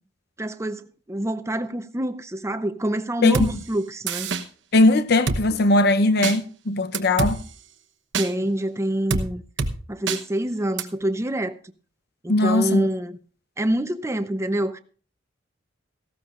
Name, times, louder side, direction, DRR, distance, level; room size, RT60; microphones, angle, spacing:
voice 1, 0.4-4.3 8.2-9.4 9.9-11.5 12.2-13.2 13.6-14.8, right 1 dB, 15° right, 0.7 m, -26 dB
Drum kit, 3.3-3.5 4.1-4.4 5.3-5.4 6.2-6.4 6.9-7.3 8.1-8.3 9.1-9.3 9.6-9.7 10.1-10.2 10.8-10.9, right 4 dB, 70° right, 1.0 m, -24 dB
voice 2, 4.7-7.4 12.3-12.9, left 2 dB, 60° left, 0.7 m, -19 dB
18.0 x 15.0 x 2.5 m
head